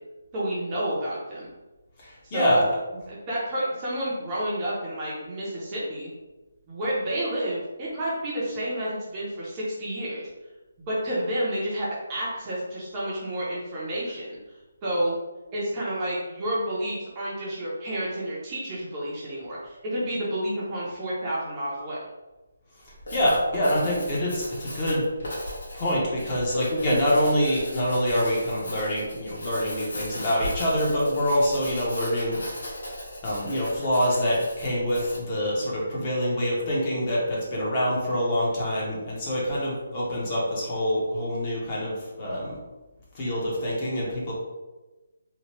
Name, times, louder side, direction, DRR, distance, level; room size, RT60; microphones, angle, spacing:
voice 1, 0.3-1.5 2.2-2.6 3.1-6.1 6.7-10.3 10.9-14.4 14.8-15.1 15.5-22.0, right 1 dB, 20° right, -7 dB, 0.5 m, -30 dB
voice 2, 2.0-2.7 22.8-25.1 25.7-32.4 33.2-42.6 43.1-44.3, equal, 25° left, -5 dB, 0.7 m, -25 dB
Writing, 22.9-35.3, left 1 dB, 75° left, 0.9 m, -38 dB
2.9 x 2.1 x 2.9 m, 1.1 s
hypercardioid pair, 170°, 0 cm